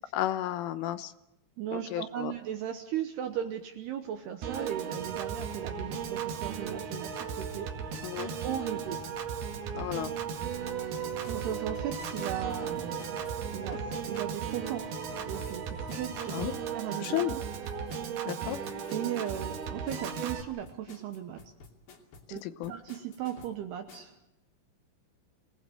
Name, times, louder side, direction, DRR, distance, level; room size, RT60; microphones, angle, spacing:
voice 1, 0.1-1.1 1.7-2.3 8.0-8.3 9.7-10.1 16.3-16.5 17.0-17.4 18.3-18.6 22.3-22.7, left 13 dB, 80° left, 11 dB, 3.4 m, -33 dB
voice 2, 1.6-7.7 8.4-9.0 11.3-13.3 13.5-14.9 15.3-17.2 18.9-21.5 22.3-24.1, right 10 dB, 75° right, 7 dB, 2.5 m, -37 dB
Piano / Organ, 4.4-20.4, right 7 dB, 60° right, 3.5 m, -36 dB
sound 1, 4.9-16.8, equal, 5° left, 1.9 m, -50 dB
sound 2, 11.2-24.2, left 4 dB, 50° left, 4.3 m, -53 dB
27.0 x 18.5 x 7.7 m, 0.89 s
omnidirectional pair, 5.9 m